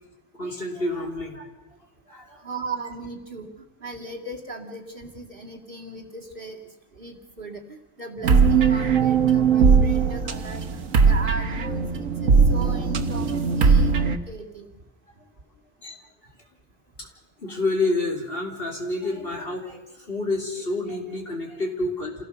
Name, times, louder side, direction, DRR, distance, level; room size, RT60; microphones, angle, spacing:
voice 1, 0.4-1.5 2.1-2.5 15.8-16.0 17.0-17.1 17.4-22.2, left 2 dB, 45° left, 1 dB, 3.9 m, -29 dB
voice 2, 2.4-3.5 3.8-6.6 7.0-13.3 13.5-13.9 14.3-14.7, right 3 dB, 45° right, 1 dB, 2.4 m, -37 dB
sound 1, 8.2-14.2, right 5 dB, 90° right, 1.6 m, -19 dB
27.5 x 17.0 x 6.8 m, 1.1 s
omnidirectional pair, 1.3 m